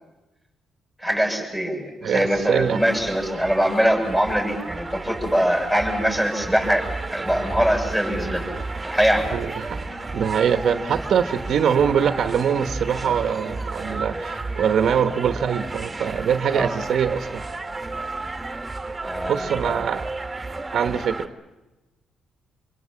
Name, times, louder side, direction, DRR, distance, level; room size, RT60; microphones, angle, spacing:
voice 1, 1.0-8.4 8.8-9.4 16.5-16.7 19.0-19.8, equal, 5° left, 2 dB, 7.7 m, -23 dB
voice 2, 2.0-2.8 9.3-9.8 10.1-17.4 19.3-20.1 20.7-21.3, right 7 dB, 65° right, 9 dB, 1.1 m, -23 dB
sound 1, 2.1-21.3, right 3 dB, 15° right, 2.1 m, -33 dB
25.5 x 24.0 x 7.5 m, 1.0 s
cardioid pair, 90°, 0 cm